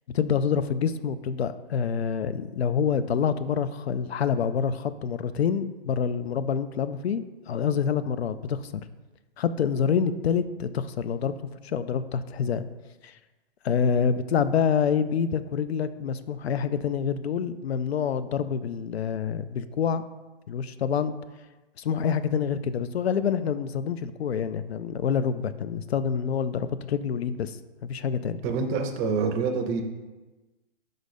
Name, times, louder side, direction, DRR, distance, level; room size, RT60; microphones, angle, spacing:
voice 1, 0.1-8.8 9.4-11.3 11.6-12.7 13.0-13.2 13.6-20.0 20.5-21.1 21.8-28.4, left 7 dB, 90° left, 13 dB, 0.5 m, -27 dB
voice 2, 28.4-29.8, right 5 dB, 20° right, 4 dB, 0.5 m, -26 dB
5.4 x 4.0 x 5.0 m, 1.2 s
hypercardioid pair, 140°, 31 cm